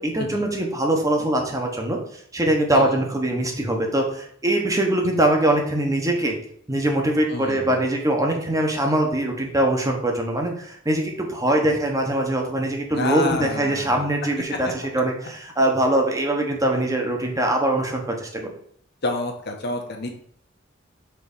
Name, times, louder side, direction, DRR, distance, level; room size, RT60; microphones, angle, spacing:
voice 1, 0.0-2.0 2.3-6.4 6.7-18.5, right 1 dB, 15° right, 2 dB, 1.1 m, -22 dB
voice 2, 7.3-7.8 12.9-14.1 14.6-14.7 19.0-20.1, left 2 dB, 55° left, 3 dB, 1.1 m, -28 dB
4.6 x 3.8 x 5.4 m, 0.63 s
head